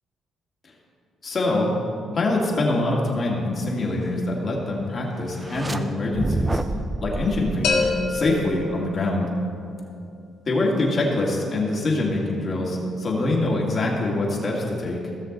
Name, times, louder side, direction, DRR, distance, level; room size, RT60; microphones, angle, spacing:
voice 1, 1.2-1.7 2.1-6.6 7.0-9.3 10.5-15.0, left 2 dB, 45° left, -3 dB, 2.4 m, -24 dB
sound 1, 5.3-5.8 6.1-8.7, right 2 dB, 20° right, 0.6 m, -29 dB
sound 2, 7.6-9.5, left 4 dB, 85° left, 1.5 m, -27 dB
17.0 x 6.5 x 4.0 m, 2.5 s
cardioid pair, 90°, 0 cm